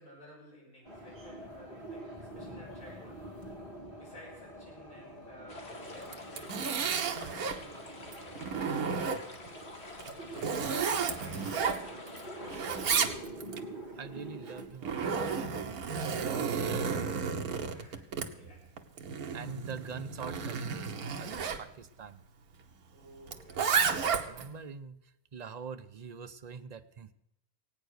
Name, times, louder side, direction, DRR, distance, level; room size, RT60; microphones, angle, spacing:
voice 1, 0.0-3.3 3.9-9.9 10.3-13.2 17.7-18.7 22.9-23.9, equal, 70° left, -4 dB, 7.6 m, -55 dB
sound 1, 0.8-14.7, right 1 dB, 15° right, 3.1 m, -46 dB
sound 2, 5.5-13.1, left 2 dB, 45° left, 2.2 m, -48 dB
Zipper (clothing), 6.0-7.6 8.1-9.5 10.0-12.2 12.5-13.6 14.5-21.6 23.3-24.5, right 6 dB, 75° right, 1.5 m, -32 dB
voice 2, 13.9-17.1 19.3-22.2 24.2-25.0 25.3-27.1, right 5 dB, 45° right, 8 dB, 0.6 m, -45 dB
17.0 x 9.3 x 6.5 m, 0.82 s
omnidirectional pair, 1.6 m